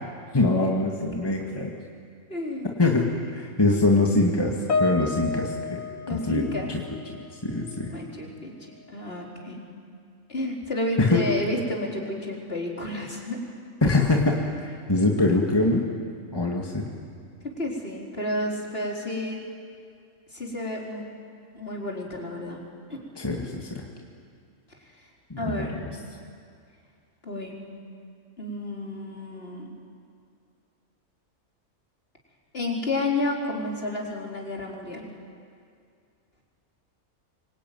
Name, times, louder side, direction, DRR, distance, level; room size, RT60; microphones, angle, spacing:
voice 1, 0.3-1.7 2.8-5.8 6.1-6.8 7.4-7.9 11.0-11.3 13.8-15.8 16.3-16.9 23.2-23.9 25.3-25.9, left 2 dB, 20° left, -1 dB, 2.1 m, -23 dB
voice 2, 2.3-2.8 6.0-6.7 7.9-8.5 8.9-9.6 10.3-13.4 17.4-19.4 20.3-21.1 21.5-22.6 22.9-23.0 23.3-23.5 25.4-25.8 27.2-27.6 28.4-29.7 32.5-35.1, left 1 dB, 45° left, -1 dB, 4.3 m, -31 dB
Piano, 4.7-7.3 7.6-7.9 8.7-8.8, left 4 dB, 85° left, 1.6 m, -31 dB
25.5 x 24.0 x 9.4 m, 2.3 s
omnidirectional pair, 1.4 m